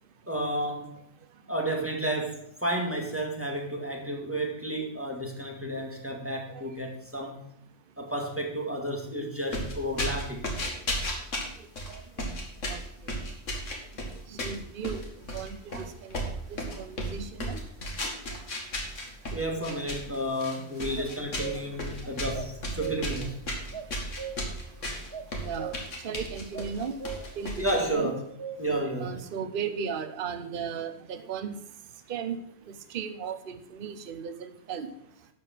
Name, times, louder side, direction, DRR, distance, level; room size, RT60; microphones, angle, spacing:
voice 1, 0.3-1.0 1.5-7.5 8.0-10.5 19.3-23.5 27.6-28.2 28.6-29.2, right 1 dB, 10° right, 1 dB, 1.9 m, -31 dB
sound 1, 9.5-27.9, equal, 80° left, 2.3 m, -34 dB
voice 2, 14.3-15.0 15.3-16.2 16.5-17.6 19.7-19.8 21.1-21.6 25.4-25.7 26.0-26.9 27.4-28.1 29.0-31.6 32.1-32.4 32.7-34.9, right 7 dB, 50° right, 9 dB, 0.9 m, -36 dB
sound 2, 21.0-21.8 22.3-23.3 23.7-24.7 25.1-26.2 26.5-26.7 27.0-27.5 27.9-28.9, right 6 dB, 25° right, 0.6 m, -40 dB
12.0 x 4.9 x 7.6 m, 0.69 s
omnidirectional pair, 1.3 m